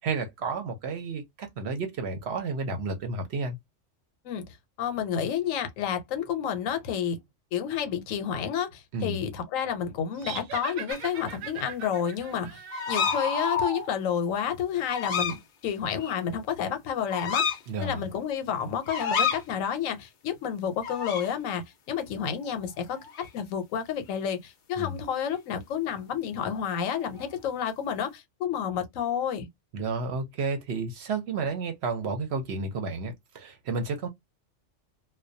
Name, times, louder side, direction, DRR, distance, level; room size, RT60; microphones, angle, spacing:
voice 1, 0.0-3.6 8.9-9.2 17.7-18.1 24.8-25.0 29.7-34.1, right 4 dB, 60° right, 0.8 m, -31 dB
voice 2, 4.8-7.2 7.5-12.6 12.9-29.5, left 8 dB, 85° left, 1.0 m, -30 dB
sound 1, 10.2-13.6, right 8 dB, 90° right, 1.0 m, -40 dB
sound 2, 10.9-11.0 12.7-13.9 14.9-15.4 16.0-16.1 17.1-17.6 18.9-19.4 20.8-21.3 22.5-22.7 23.0-23.3 26.6-27.3, left 5 dB, 55° left, 0.6 m, -29 dB
2.2 x 2.2 x 2.5 m
omnidirectional pair, 1.3 m